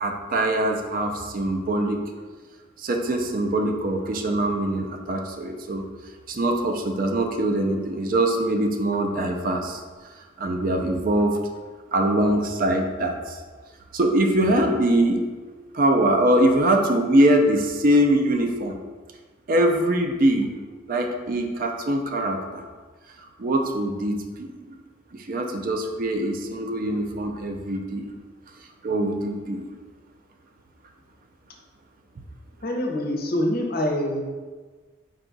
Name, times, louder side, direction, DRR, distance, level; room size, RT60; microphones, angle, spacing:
voice 1, 0.0-2.0 2.8-5.8 6.3-9.8 10.4-11.4 11.9-13.4 13.9-15.2 15.7-18.8 19.5-20.5 20.9-22.6 23.4-24.5 25.1-28.1 28.8-29.6, right 1 dB, 45° right, 4 dB, 0.4 m, -23 dB
voice 2, 32.6-34.2, left 1 dB, 45° left, 1 dB, 0.6 m, -25 dB
4.6 x 2.3 x 3.9 m, 1.4 s
head